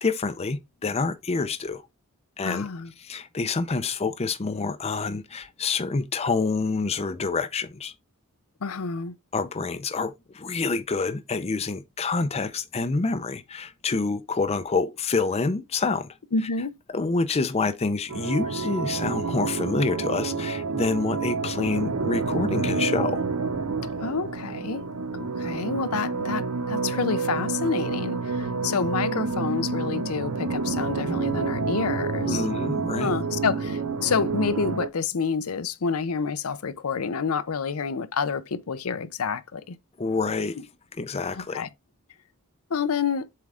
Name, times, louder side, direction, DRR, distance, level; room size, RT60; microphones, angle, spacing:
voice 1, 0.0-1.8 2.4-2.7 3.0-7.9 9.3-16.2 16.9-23.2 32.3-33.1 40.0-40.6 41.0-41.6, left 4 dB, 30° left, 0.5 m, -27 dB
voice 2, 2.4-2.9 8.6-9.1 16.3-16.8 24.0-24.9 25.1-32.5 33.0-39.8 40.6-40.7 41.5-41.7 42.7-43.3, left 5 dB, 75° left, 0.6 m, -28 dB
sound 1, 18.1-34.9, right 4 dB, 85° right, 0.8 m, -28 dB
7.6 x 3.6 x 3.5 m
head